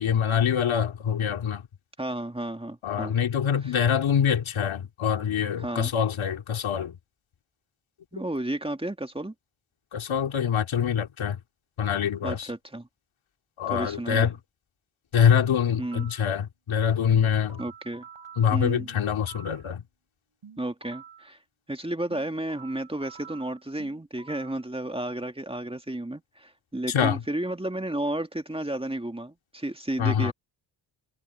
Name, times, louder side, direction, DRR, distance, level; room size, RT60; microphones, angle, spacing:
voice 1, 0.0-1.7 2.8-7.0 9.9-11.4 11.8-12.5 13.6-14.4 15.1-17.6 18.4-19.8 26.9-27.2 30.0-30.3, left 8 dB, 80° left, 2.8 m, -25 dB
voice 2, 2.0-3.2 3.6-3.7 5.6-5.9 8.1-9.3 12.2-12.9 13.7-14.3 15.8-16.1 17.6-18.1 18.5-18.9 20.6-21.4 21.7-30.3, right 1 dB, 10° right, 2.1 m, -32 dB
sound 1, 15.4-16.3 17.1-19.6 20.4-21.3 22.1-24.6, right 7 dB, 70° right, 6.7 m, -48 dB
cardioid pair, 65°, 47 cm